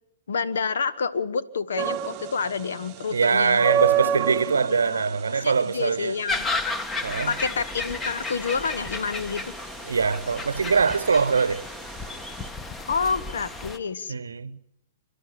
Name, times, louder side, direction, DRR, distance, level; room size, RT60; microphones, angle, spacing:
voice 1, 0.3-3.6 4.7-6.5 7.3-9.5 12.9-14.1, left 5 dB, 65° left, 1.1 m, -29 dB
sound 1, 1.8-12.5, right 9 dB, 30° right, 0.9 m, -31 dB
voice 2, 3.1-6.1 7.0-7.3 9.8-11.6 14.1-14.6, right 5 dB, 70° right, 0.9 m, -23 dB
sound 2, 6.3-13.8, left 3 dB, 15° left, 1.3 m, -33 dB
29.0 x 11.5 x 9.0 m
figure-of-eight pair, 105°, 0 cm